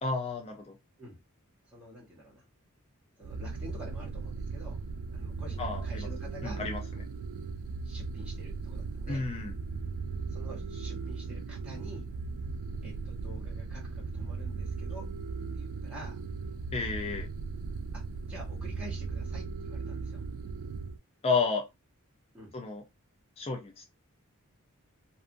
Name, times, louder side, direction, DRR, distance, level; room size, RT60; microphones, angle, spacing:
voice 1, 0.0-0.8 5.6-6.1 6.4-6.8 9.1-9.5 16.7-17.3 21.2-21.7 22.5-22.8 23.4-23.9, left 4 dB, 30° left, 0.4 m, -31 dB
voice 2, 1.7-2.4 3.2-4.8 5.1-6.6 6.9-7.0 7.8-9.2 10.3-12.1 12.8-15.1 15.5-16.2 17.9-20.2 22.3-22.5, right 1 dB, 5° right, 0.9 m, -48 dB
sound 1, 3.2-21.0, right 4 dB, 70° right, 0.3 m, -37 dB
2.7 x 2.4 x 2.5 m
head